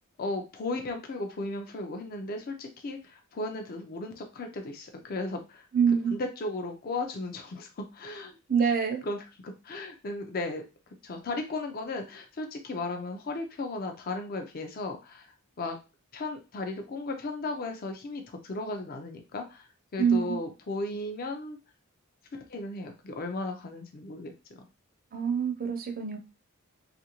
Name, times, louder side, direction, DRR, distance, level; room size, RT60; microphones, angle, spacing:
voice 1, 0.2-5.7 6.1-8.4 8.6-8.7 9.0-10.6 11.0-15.3 15.6-15.8 16.1-21.6 22.3-24.3, left 2 dB, 45° left, 5 dB, 0.4 m, -35 dB
voice 2, 5.7-6.1 8.5-9.0 20.0-20.4 25.1-26.2, right 6 dB, 40° right, 5 dB, 0.6 m, -25 dB
3.0 x 2.5 x 2.9 m, 0.29 s
head